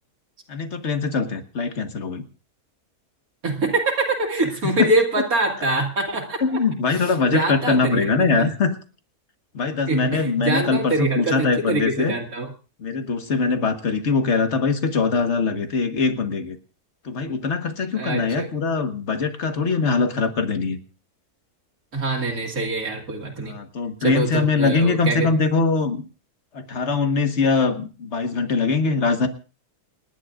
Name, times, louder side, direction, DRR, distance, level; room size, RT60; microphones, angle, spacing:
voice 1, 0.5-2.2 4.8-4.9 6.4-8.8 9.5-12.1 12.8-16.6 17.0-20.8 23.4-26.0 26.5-29.3, left 4 dB, 50° left, 7 dB, 1.7 m, -22 dB
voice 2, 3.4-6.6 7.3-8.3 9.9-12.5 17.9-18.5 21.9-23.6 24.0-25.3, right 2 dB, 65° right, 1 dB, 2.4 m, -24 dB
29.0 x 11.0 x 2.5 m, 0.36 s
omnidirectional pair, 1.6 m